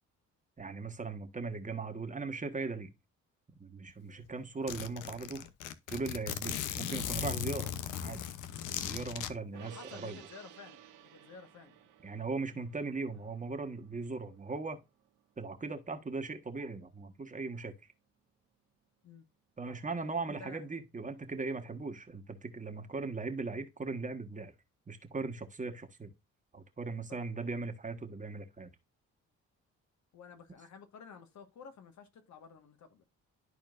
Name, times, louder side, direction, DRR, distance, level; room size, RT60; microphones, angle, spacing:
voice 1, 0.6-2.9 3.6-5.5 5.9-7.7 8.0-8.2 8.8-10.2 12.0-14.8 15.4-17.7 19.6-24.5 24.9-26.1 26.5-28.7, right 3 dB, 25° right, 1.4 m, -39 dB
Zipper (clothing), 3.9-4.0 4.2-4.3 4.7-9.3, left 10 dB, 90° left, 0.8 m, -37 dB
voice 2, 9.5-11.9 13.1-13.2 19.0-19.3 19.7-19.8 20.3-20.6 27.1-27.2 30.1-33.0, left 5 dB, 65° left, 1.6 m, -52 dB
Gong, 9.5-16.1 16.5-16.6, right 10 dB, 85° right, 1.4 m, -57 dB
12.5 x 4.3 x 2.5 m
cardioid pair, 90°, 30 cm